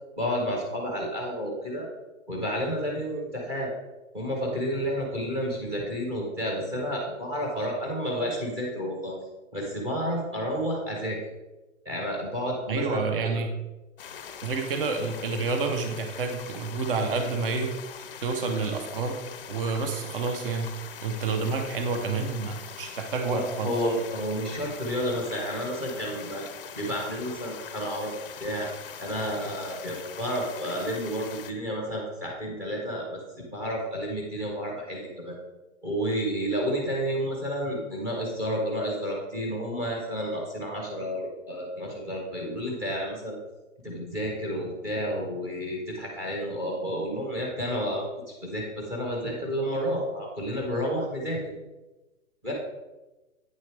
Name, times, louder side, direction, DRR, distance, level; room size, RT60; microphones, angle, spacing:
voice 1, 0.2-1.9 2.3-3.7 4.1-9.1 9.5-11.2 11.8-13.4 21.4-21.5 23.3-26.4 26.8-28.1 28.4-28.7 29.0-33.2 33.5-35.4 35.8-43.4 43.8-51.4 52.4-52.5, equal, 5° right, -1 dB, 0.7 m, -31 dB
voice 2, 12.7-13.5 14.4-17.7 18.2-19.2 19.5-20.7 21.0-23.7, right 4 dB, 40° right, 5 dB, 0.9 m, -29 dB
sound 1, 14.0-31.5, left 7 dB, 45° left, 0.5 m, -42 dB
9.2 x 6.4 x 3.4 m, 1.1 s
hypercardioid pair, 170°, 41 cm